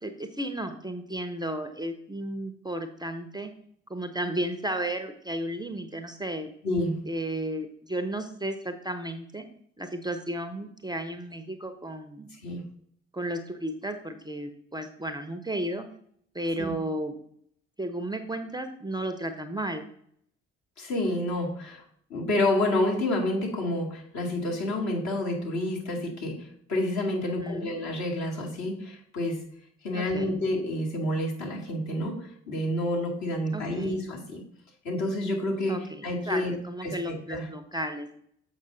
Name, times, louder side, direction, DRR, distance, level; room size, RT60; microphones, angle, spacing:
voice 1, 0.0-3.5 3.9-6.5 7.1-9.5 9.8-12.3 13.1-15.9 16.3-17.2 17.8-19.8 27.2-27.7 29.9-30.4 33.5-34.0 35.7-38.1, right 1 dB, 10° right, 8 dB, 0.7 m, -33 dB
voice 2, 6.6-7.0 12.4-12.6 16.6-16.8 20.8-21.8 22.1-29.5 29.8-34.4 34.8-36.5 36.8-37.5, left 1 dB, 55° left, -1 dB, 2.1 m, -29 dB
7.3 x 5.3 x 3.9 m, 0.66 s
figure-of-eight pair, 40°, 34 cm